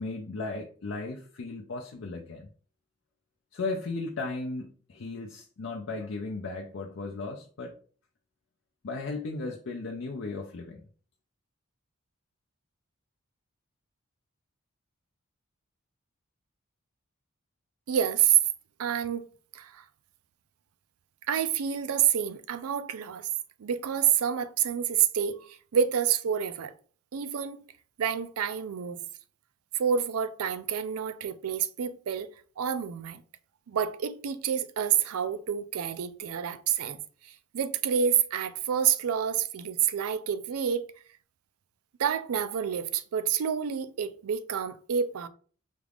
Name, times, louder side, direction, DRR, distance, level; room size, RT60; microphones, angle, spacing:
voice 1, 0.0-2.5 3.5-7.8 8.8-10.8, left 3 dB, 60° left, 0.5 m, -36 dB
voice 2, 17.9-18.4 18.8-19.3 19.5-19.8 21.3-23.3 23.6-26.7 27.1-27.6 28.0-29.0 29.7-32.3 32.6-33.2 33.7-37.0 37.2-40.8 42.0-45.3, right 8 dB, 85° right, 0.4 m, -28 dB
4.9 x 2.4 x 3.4 m
head